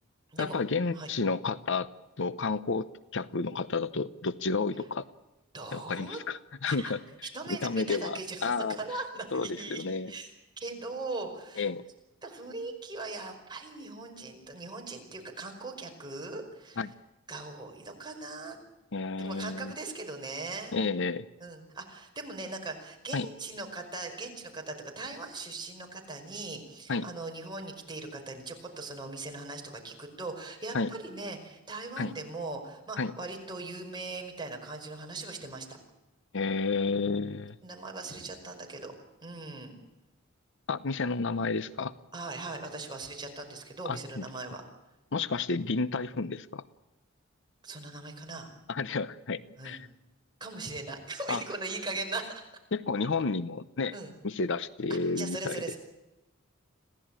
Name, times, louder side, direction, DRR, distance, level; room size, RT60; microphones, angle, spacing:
voice 1, 0.4-1.9 2.2-5.1 5.7-7.0 7.5-8.8 9.3-10.1 11.6-11.8 16.8-16.9 18.9-19.7 20.7-21.3 23.1-23.3 26.9-27.1 30.7-30.9 32.0-32.1 33.0-33.1 36.3-37.5 40.7-41.9 43.8-44.2 45.1-46.6 48.7-49.9 51.3-51.4 52.7-53.9 54.2-55.7, left 4 dB, 65° left, 15 dB, 0.8 m, -31 dB
voice 2, 5.5-6.2 6.7-6.9 7.3-10.3 10.6-11.7 12.2-16.8 17.3-18.6 19.2-20.7 21.4-35.8 37.6-38.9 39.2-39.8 42.1-44.6 47.6-48.5 49.6-49.8 50.4-52.5 53.9-54.1 54.9-55.8, right 3 dB, 20° right, 2 dB, 5.2 m, -40 dB
26.5 x 16.5 x 9.0 m, 1.0 s
head